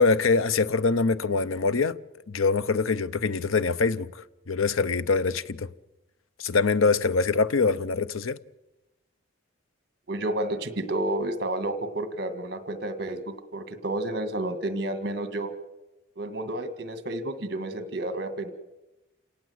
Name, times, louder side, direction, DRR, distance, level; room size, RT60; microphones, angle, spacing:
voice 1, 0.0-2.0 2.3-5.7 6.4-8.4, left 4 dB, 90° left, 0.7 m, -24 dB
voice 2, 10.1-15.5 16.2-18.5, right 1 dB, 50° right, 1.9 m, -31 dB
28.5 x 18.0 x 8.0 m
head